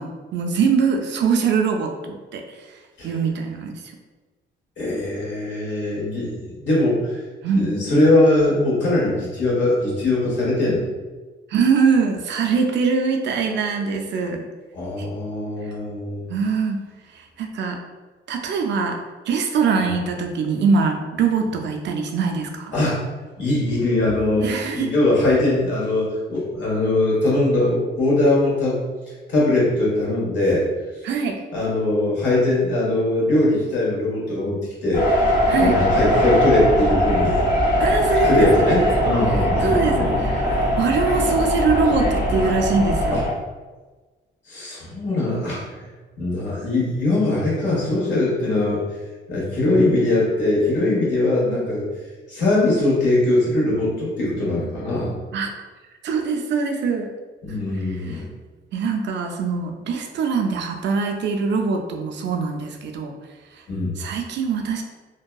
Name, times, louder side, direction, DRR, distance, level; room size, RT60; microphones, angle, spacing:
voice 1, 0.0-3.7 7.4-7.7 11.5-14.4 15.0-15.1 15.6-15.7 16.3-16.8 17.1-17.8 18.3-19.0 19.3-22.7 24.4-24.9 31.0-31.4 35.5-35.8 37.8-40.5 40.8-43.2 55.3-55.5 56.0-57.1 57.5-57.6 57.9-58.2 58.7-63.1 63.5-63.6 64.0-64.8, right 5 dB, 65° right, 3 dB, 0.4 m, -23 dB
voice 2, 4.8-7.2 7.5-10.9 14.7-16.3 19.8-19.9 22.7-23.0 23.4-24.5 24.7-28.9 29.3-30.7 31.5-35.1 35.3-37.4 38.2-40.1 43.1-43.2 44.5-45.6 46.2-48.8 49.3-51.9 52.3-55.1 57.4-58.2 63.7-63.9, left 2 dB, 65° left, -6 dB, 1.2 m, -21 dB
sound 1, 34.9-43.3, equal, 40° left, 0.9 m, -20 dB
2.6 x 2.3 x 2.3 m, 1.3 s
cardioid pair, 90°, 20 cm